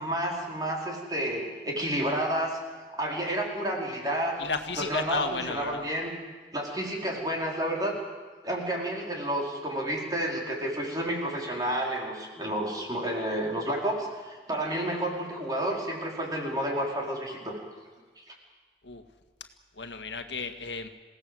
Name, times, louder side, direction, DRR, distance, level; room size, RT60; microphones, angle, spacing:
voice 1, 0.0-2.6 3.0-4.4 4.8-6.1 6.5-8.0 8.4-17.6 18.2-18.3, right 1 dB, 20° right, -1 dB, 4.6 m, -30 dB
voice 2, 4.4-5.9 18.8-19.0 19.8-20.9, left 4 dB, 85° left, 7 dB, 1.9 m, -33 dB
27.5 x 17.5 x 7.9 m, 1.4 s
head